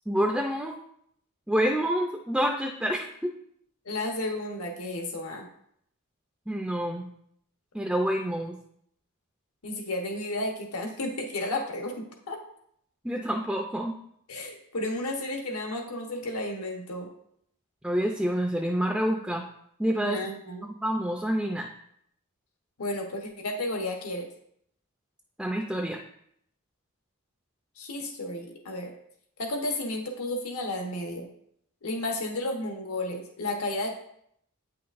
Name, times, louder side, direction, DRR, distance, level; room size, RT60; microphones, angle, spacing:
voice 1, 0.1-0.8 1.5-3.3 6.5-7.1 7.7-8.6 13.0-14.0 17.8-19.4 19.8-20.2 20.8-21.7 25.4-26.0, equal, 5° right, 1 dB, 0.4 m, -27 dB
voice 2, 3.8-5.5 9.6-11.9 12.3-12.4 14.3-17.1 20.0-20.7 22.8-24.3 27.8-28.9 29.4-31.3 31.8-33.9, left 1 dB, 80° left, 2 dB, 1.1 m, -32 dB
8.9 x 5.8 x 2.5 m, 0.70 s
head